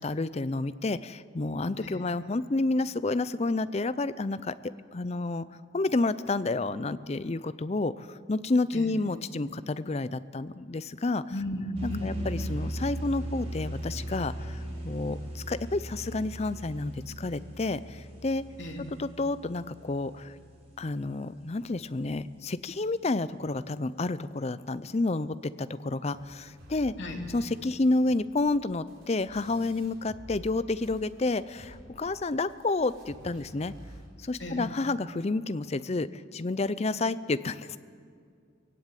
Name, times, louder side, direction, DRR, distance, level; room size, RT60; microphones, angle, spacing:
voice 1, 0.0-4.6 4.9-5.5 5.7-11.2 11.8-18.4 19.0-20.4 20.8-26.9 27.3-33.7 34.2-37.8, left 2 dB, 30° left, 15 dB, 0.5 m, -30 dB
voice 2, 11.3-12.2 18.6-18.8 27.0-27.2 34.4-34.6, left 1 dB, 60° left, 1 dB, 2.9 m, -34 dB
sound 1, 11.7-21.2, right 1 dB, 30° right, 4.0 m, -38 dB
sound 2, 26.1-30.6 30.8-34.1, equal, 75° right, 4.0 m, -50 dB
20.0 x 16.5 x 9.1 m, 2.2 s
head